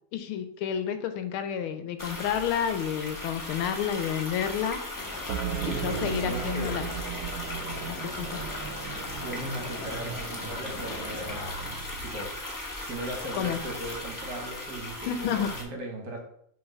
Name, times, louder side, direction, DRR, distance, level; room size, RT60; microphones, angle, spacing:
voice 1, 0.1-4.8 5.7-6.9 7.9-8.4 13.4-13.6 15.0-15.6, left 8 dB, 85° left, 8 dB, 1.5 m, -30 dB
sound 1, 2.0-15.6, left 1 dB, 25° left, 0.4 m, -37 dB
sound 2, 4.9-11.5, left 4 dB, 55° left, 1.2 m, -42 dB
sound 3, 5.3-12.2, right 8 dB, 90° right, 1.5 m, -37 dB
voice 2, 5.5-6.9 9.1-12.4 12.8-16.2, right 1 dB, 55° right, 1 dB, 1.6 m, -38 dB
5.7 x 3.6 x 5.4 m, 0.69 s
omnidirectional pair, 2.3 m